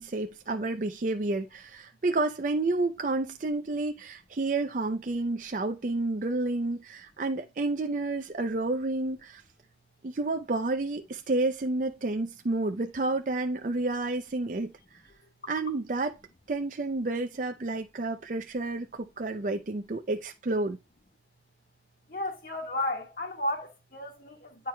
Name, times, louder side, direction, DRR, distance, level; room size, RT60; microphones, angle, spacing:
voice 1, 0.0-9.4 10.0-14.7 15.5-16.1 16.5-20.8, right 2 dB, 45° right, 0.5 m, -30 dB
voice 2, 22.1-24.7, left 1 dB, 55° left, 1.6 m, -33 dB
10.5 x 4.6 x 2.2 m
head